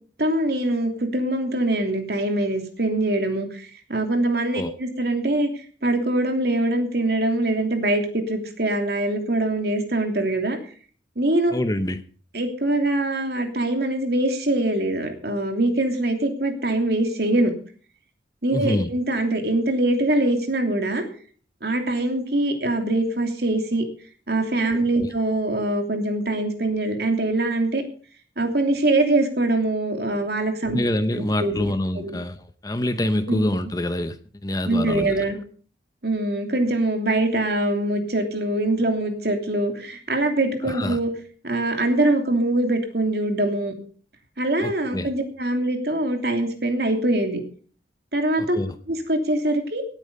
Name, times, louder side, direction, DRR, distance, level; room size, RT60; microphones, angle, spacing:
voice 1, 0.2-5.5 5.8-10.6 11.2-11.5 12.3-17.5 18.4-21.0 21.6-23.8 24.3-27.8 28.4-30.8 31.1-32.2 33.3-33.4 34.6-35.4 36.0-41.1 41.4-43.7 44.4-47.4 48.1-48.6 48.9-49.8, right 1 dB, 60° right, 2.9 m, -23 dB
voice 2, 11.5-12.0 18.5-18.9 25.0-25.1 30.7-34.2 34.4-35.2 40.6-41.0 44.6-45.1 48.5-48.7, left 1 dB, 20° left, 0.8 m, -26 dB
17.5 x 8.9 x 5.4 m
head